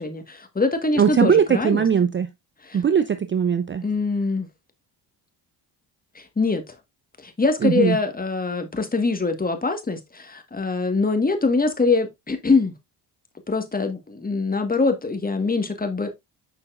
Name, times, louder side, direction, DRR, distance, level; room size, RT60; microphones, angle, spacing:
voice 1, 0.0-1.8 2.6-2.8 3.8-4.5 6.1-6.7 7.2-12.7 13.5-16.1, left 3 dB, 20° left, 1.6 m, -23 dB
voice 2, 0.9-2.3 2.7-3.8 7.6-8.0, right 7 dB, 25° right, 0.5 m, -20 dB
7.0 x 5.6 x 2.5 m
supercardioid pair, 65°, 44 cm